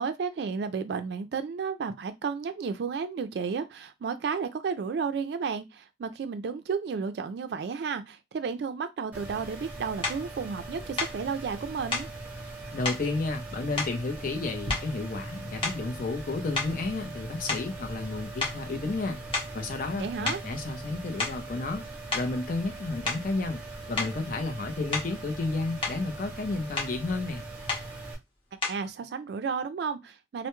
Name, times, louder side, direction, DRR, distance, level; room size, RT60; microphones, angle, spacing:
voice 1, 0.0-12.1 20.0-20.4 28.7-30.5, right 5 dB, 65° right, 0.3 m, -32 dB
sound 1, 9.1-28.1, right 2 dB, 10° right, 0.8 m, -40 dB
sound 2, 10.0-10.2 11.0-11.2 11.9-12.1 12.8-13.1 13.8-14.4 14.7-15.1 15.6-16.0 16.5-18.1 18.4-18.6 19.3-19.6 20.3-20.5 21.0-21.5 22.1-22.3 23.1-23.3 24.0-24.2 24.9-25.2 25.6-26.0 26.8-27.0 27.7-27.9 28.6-28.9, left 4 dB, 30° left, 0.9 m, -32 dB
voice 2, 12.7-19.2 19.5-21.8 22.1-23.6 23.9-27.4, left 3 dB, 50° left, 0.5 m, -32 dB
2.2 x 2.0 x 2.9 m
head